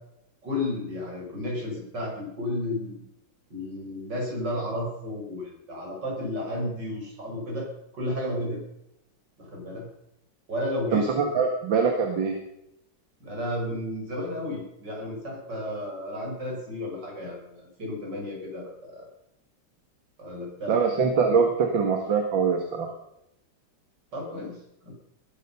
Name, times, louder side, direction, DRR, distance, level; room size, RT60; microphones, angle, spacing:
voice 1, 0.4-3.0 3.5-8.6 9.4-9.9 10.5-11.1 11.3-11.4 13.2-19.1 20.2-20.8 24.1-24.6 24.8-24.9, left 1 dB, 65° right, -1 dB, 6.6 m, -33 dB
voice 2, 10.9-12.4 20.7-22.9, right 5 dB, 85° right, 4 dB, 2.5 m, -23 dB
20.0 x 11.5 x 5.6 m, 0.83 s
omnidirectional pair, 2.1 m